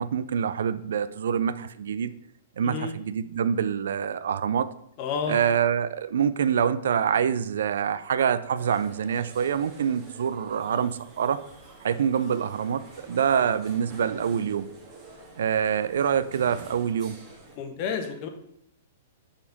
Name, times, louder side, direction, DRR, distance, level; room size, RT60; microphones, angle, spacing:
voice 1, 0.0-2.1 2.6-4.7 5.3-11.4 11.8-14.7 15.4-17.2, right 8 dB, 70° right, 14 dB, 0.4 m, -26 dB
voice 2, 2.6-2.9 5.0-5.4 17.6-18.3, left 6 dB, 45° left, 5 dB, 1.2 m, -30 dB
sound 1, 8.5-17.6, right 3 dB, 30° right, 1.9 m, -47 dB
5.6 x 4.3 x 5.3 m, 0.72 s
hypercardioid pair, 115°, 0 cm